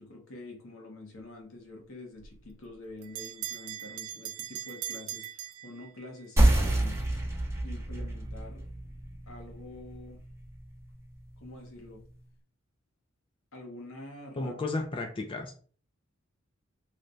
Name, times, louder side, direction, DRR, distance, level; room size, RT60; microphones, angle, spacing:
voice 1, 0.0-7.0 7.6-8.7 9.3-10.2 11.4-12.0 13.5-14.6, left 2 dB, 80° left, 1 dB, 1.0 m, -46 dB
Bell, 2.2-6.3, right 11 dB, 85° right, 0.4 m, -40 dB
sound 1, 6.4-11.5, right 1 dB, 10° right, 0.8 m, -28 dB
voice 2, 14.4-15.6, left 2 dB, 25° left, 3 dB, 0.4 m, -33 dB
3.1 x 2.2 x 3.9 m, 0.44 s
head